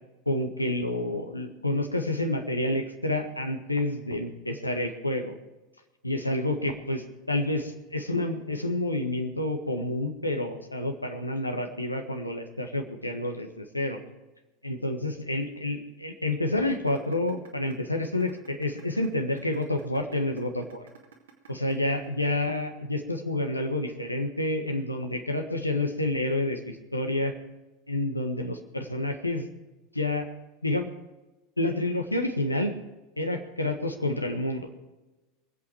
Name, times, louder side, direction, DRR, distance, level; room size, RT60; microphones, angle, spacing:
voice 1, 0.2-5.3 6.0-14.0 14.6-20.8 21.5-27.3 27.9-29.5 29.9-30.3 30.6-30.9 31.6-32.8 33.2-34.7, left 1 dB, 85° left, 5 dB, 1.5 m, -29 dB
sound 1, 16.7-22.7, right 7 dB, 65° right, 2.3 m, -53 dB
24.5 x 8.4 x 4.6 m, 1.1 s
figure-of-eight pair, 80°, 0 cm